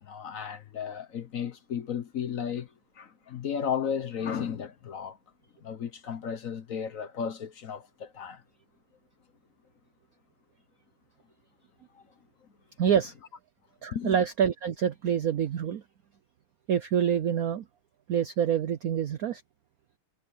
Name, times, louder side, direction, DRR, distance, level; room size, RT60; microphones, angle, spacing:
voice 1, 0.0-2.7 3.0-5.2 5.6-8.4 11.9-12.0 13.9-14.2, left 7 dB, 50° left, 1.1 m, -34 dB
voice 2, 12.8-13.1 13.8-15.8 16.7-17.6 18.1-19.4, right 8 dB, 70° right, 0.8 m, -26 dB
omnidirectional pair, 2.3 m